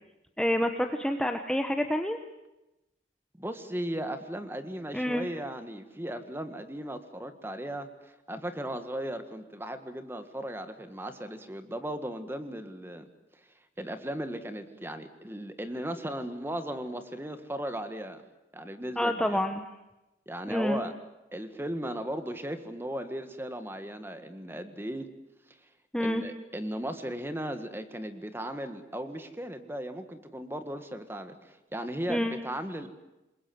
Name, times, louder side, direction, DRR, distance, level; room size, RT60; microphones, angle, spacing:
voice 1, 0.4-2.2 4.9-5.3 19.0-19.6 20.5-20.8 25.9-26.3 32.1-32.4, left 1 dB, 5° left, 5 dB, 1.1 m, -28 dB
voice 2, 3.4-13.1 13.8-18.2 18.5-19.4 20.3-20.9 21.3-25.1 26.0-32.9, right 1 dB, 10° right, 9 dB, 1.7 m, -36 dB
27.5 x 21.5 x 7.9 m, 0.96 s
head